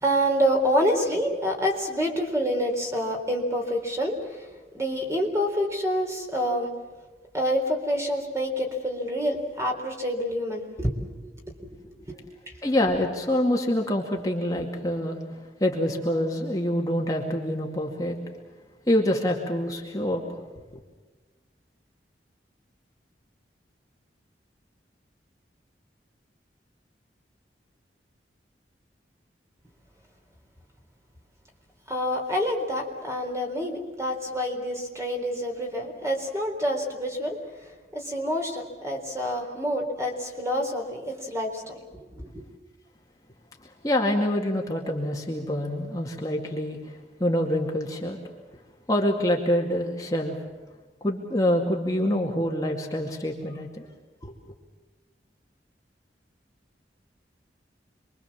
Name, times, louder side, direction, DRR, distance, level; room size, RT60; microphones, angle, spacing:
voice 1, 0.0-4.5 4.7-6.7 7.3-11.8 12.1-12.2 12.5-12.6 14.5-14.7 31.9-37.4 37.9-42.4, equal, 15° right, 2 dB, 3.9 m, -27 dB
voice 2, 12.6-15.2 15.6-18.2 18.9-20.2 43.8-48.2 48.9-50.4 51.0-53.9 54.2-54.3, left 1 dB, 20° left, 0 dB, 2.2 m, -26 dB
27.5 x 23.0 x 7.4 m, 1.3 s
head